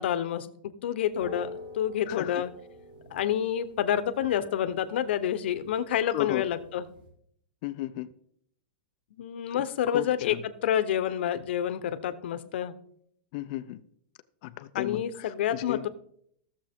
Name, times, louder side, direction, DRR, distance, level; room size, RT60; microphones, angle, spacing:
voice 1, 0.0-1.5 1.7-2.5 3.1-6.9 9.1-12.7 14.7-15.9, left 10 dB, 70° left, 12 dB, 0.9 m, -28 dB
sound 1, 1.1-7.1, left 1 dB, 55° right, 4.6 m, -48 dB
voice 2, 2.1-2.4 6.1-6.4 7.6-8.1 9.5-9.6 9.9-10.4 13.3-13.8 14.4-15.9, left 16 dB, 40° left, 13 dB, 0.5 m, -34 dB
15.5 x 7.1 x 3.6 m, 0.66 s
supercardioid pair, 165°, 6 cm